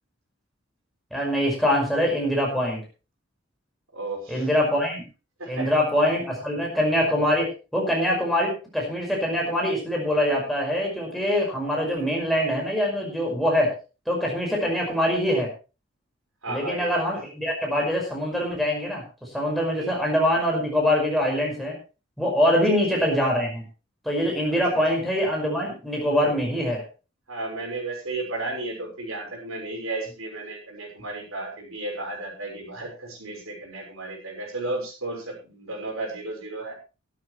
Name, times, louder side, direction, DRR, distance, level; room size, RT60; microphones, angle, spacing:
voice 1, 1.1-2.8 4.3-5.1 5.5-13.7 14.1-15.5 16.5-19.0 19.3-21.8 22.2-23.6 24.0-26.8, equal, ahead, -1 dB, 5.5 m, -24 dB
voice 2, 3.9-4.5 5.4-5.7 16.4-16.9 19.8-20.0 24.7-24.8 27.3-36.7, right 2 dB, 85° right, 1 dB, 6.2 m, -33 dB
16.5 x 12.5 x 3.3 m, 0.32 s
head